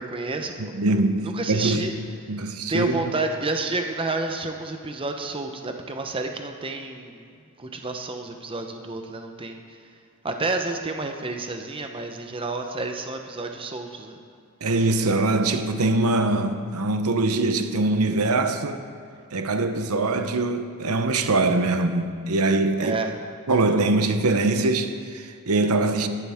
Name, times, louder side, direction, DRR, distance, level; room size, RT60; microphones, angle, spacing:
voice 1, 0.0-0.7 1.2-1.9 2.7-7.3 7.6-9.9 10.2-14.2 22.8-23.1, right 3 dB, 25° right, 0.8 m, -30 dB
voice 2, 0.6-2.0 2.3-3.0 14.6-18.8 19.3-23.0 23.5-26.1, right 2 dB, 80° right, 0.8 m, -23 dB
18.5 x 11.5 x 3.6 m
head